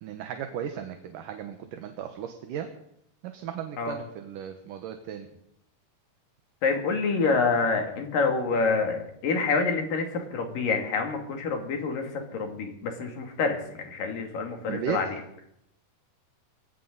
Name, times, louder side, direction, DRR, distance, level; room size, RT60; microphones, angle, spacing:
voice 1, 0.0-2.7 3.2-5.3 14.7-15.0, right 9 dB, 70° right, 6 dB, 2.5 m, -35 dB
voice 2, 6.6-15.2, left 4 dB, 60° left, 3 dB, 4.1 m, -27 dB
21.0 x 17.0 x 4.0 m, 0.74 s
omnidirectional pair, 4.4 m